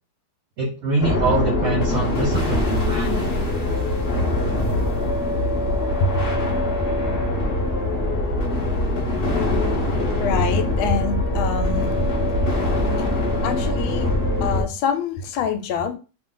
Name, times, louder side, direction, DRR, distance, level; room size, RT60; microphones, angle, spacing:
voice 1, 0.6-3.3, right 3 dB, 60° right, 0.9 m, -24 dB
sound 1, 1.0-14.6, left 1 dB, 70° left, 0.5 m, -23 dB
voice 2, 10.2-11.9 13.4-14.1 14.4-16.0, left 6 dB, 85° left, 1.4 m, -25 dB
3.1 x 2.5 x 3.7 m
omnidirectional pair, 2.2 m